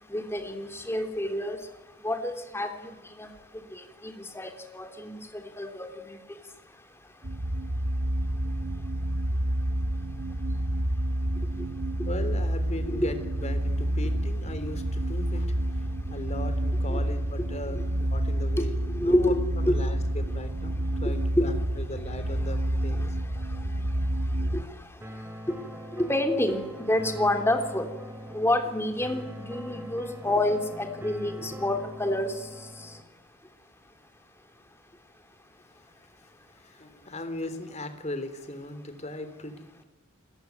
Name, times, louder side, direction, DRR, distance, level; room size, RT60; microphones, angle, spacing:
voice 1, 0.1-1.6 2.0-2.9 3.2-3.3 3.7-5.2 5.6-6.2 11.6-11.7 12.9-13.1 16.9-17.0 17.7-17.8 18.6-19.4 19.7-19.8 21.4-21.5 23.0-23.1 24.5-24.6 26.0-27.9 28.3-32.3, left 1 dB, 10° left, 6 dB, 3.3 m, -28 dB
sound 1, 7.2-24.6, right 1 dB, 65° right, 1.9 m, -29 dB
voice 2, 12.1-18.7 19.0-23.0 23.6-23.8 36.6-39.8, left 1 dB, 30° left, 10 dB, 3.5 m, -38 dB
sound 2, 25.0-33.0, equal, 10° right, 3.0 m, -42 dB
29.0 x 20.5 x 9.5 m, 1.1 s
head